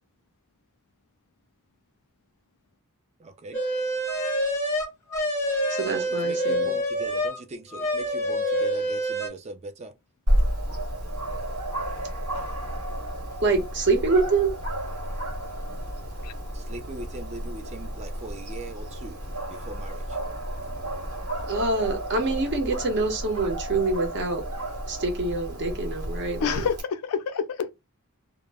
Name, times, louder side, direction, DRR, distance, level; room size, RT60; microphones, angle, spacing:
voice 1, 3.2-3.6 5.9-9.9 16.5-19.2 19.5-20.0, right 2 dB, 30° right, 0.3 m, -40 dB
sound 1, 3.5-7.4 7.7-9.3, equal, 10° left, 0.6 m, -26 dB
voice 2, 5.7-6.7 13.4-14.5 21.5-24.4 24.9-26.6, right 3 dB, 50° right, 0.7 m, -25 dB
Dog, 10.3-26.8, right 1 dB, 90° right, 1.2 m, -31 dB
voice 3, 26.4-27.7, left 6 dB, 75° left, 0.4 m, -28 dB
2.0 x 2.0 x 3.3 m
head